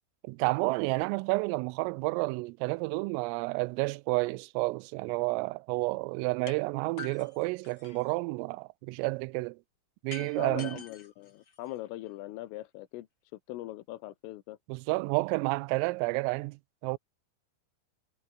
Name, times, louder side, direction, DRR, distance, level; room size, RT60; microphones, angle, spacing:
voice 1, 0.2-9.6 10.0-10.8 14.7-17.0, right 25 dB, 85° right, 3.2 m, -30 dB
sound 1, 6.5-6.6 7.0-8.2 10.1-12.1, left 5 dB, 55° left, 1.2 m, -46 dB
voice 2, 10.2-13.1 13.5-14.6, left 16 dB, 80° left, 3.7 m, -41 dB
omnidirectional pair, 5.8 m